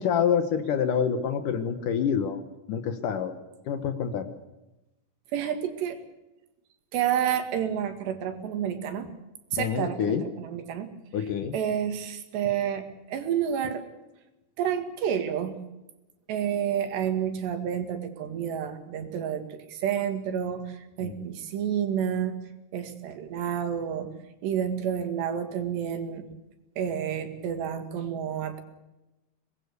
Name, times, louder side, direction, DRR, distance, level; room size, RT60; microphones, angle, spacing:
voice 1, 0.0-2.4 2.7-3.3 3.7-4.3 9.6-10.2 11.1-11.5 21.0-21.3, left 7 dB, 65° left, 9 dB, 2.5 m, -27 dB
voice 2, 5.3-6.0 6.9-9.1 9.5-10.9 11.5-13.9 14.6-15.6 16.3-20.7 21.0-22.4 22.7-24.1 24.4-26.2 26.8-28.6, right 9 dB, 90° right, 7 dB, 4.2 m, -29 dB
25.0 x 20.0 x 6.9 m, 0.99 s
omnidirectional pair, 4.7 m